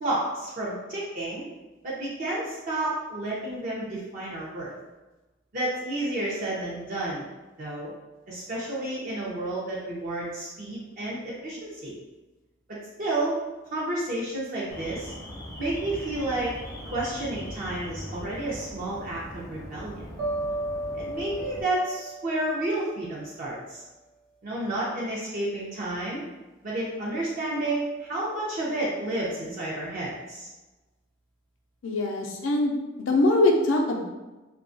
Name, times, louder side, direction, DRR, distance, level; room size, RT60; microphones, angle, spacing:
voice 1, 0.0-1.4 1.8-4.7 5.5-7.2 7.6-7.9 8.3-11.9 13.0-13.3 13.7-15.1 15.6-16.5 16.9-20.0 20.9-23.8 24.4-26.2 26.6-30.5, right 1 dB, 45° right, -6 dB, 0.5 m, -31 dB
Alarm, 14.7-21.6, equal, 20° left, 0.4 m, -40 dB
sound 1, 20.2-23.3, right 1 dB, 90° right, 1.1 m, -34 dB
voice 2, 31.8-32.8 33.1-34.0, left 2 dB, 85° left, 2 dB, 0.4 m, -22 dB
2.7 x 2.2 x 2.5 m, 1.1 s
head